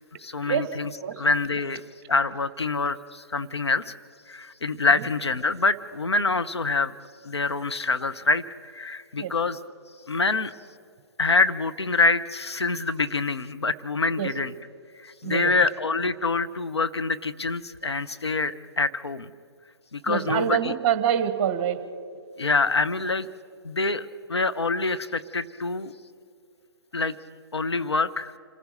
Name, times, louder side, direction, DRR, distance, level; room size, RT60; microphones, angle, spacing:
voice 1, 0.2-0.9 1.2-1.8 2.1-4.0 4.3-6.9 7.2-9.6 10.1-10.5 11.2-14.5 15.0-19.3 19.9-20.7 22.4-23.3 23.6-25.9 26.9-27.2 27.5-28.3, left 3 dB, 80° left, 11 dB, 0.9 m, -25 dB
voice 2, 15.2-15.5 20.1-21.8, right 9 dB, 30° right, 12 dB, 1.3 m, -25 dB
27.0 x 15.0 x 6.6 m, 2.3 s
figure-of-eight pair, 130°, 14 cm